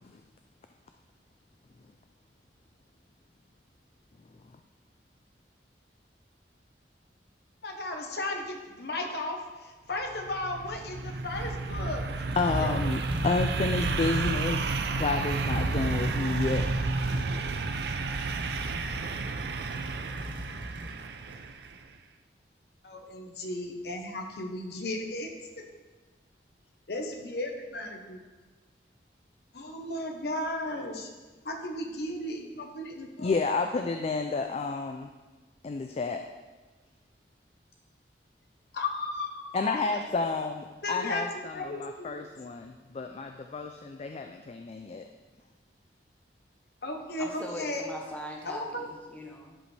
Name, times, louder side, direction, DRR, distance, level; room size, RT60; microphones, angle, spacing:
voice 1, 7.6-12.2 12.6-12.9 22.8-25.3 25.6-25.7 26.9-28.2 29.5-31.1 31.4-33.4 38.7-40.1 40.8-42.3 46.8-47.9 48.4-48.9, left 2 dB, 60° left, 3 dB, 1.0 m, -35 dB
sound 1, 10.1-21.7, right 3 dB, 65° right, 0.5 m, -31 dB
sound 2, 11.8-21.6, equal, 30° right, 1.1 m, -41 dB
voice 2, 12.4-14.6 15.0-16.7 33.2-35.1 35.6-36.2 39.5-45.1, left 3 dB, 35° left, 5 dB, 0.3 m, -30 dB
voice 3, 47.2-49.6, equal, 10° left, -1 dB, 0.9 m, -40 dB
11.0 x 5.1 x 3.3 m, 1.2 s
head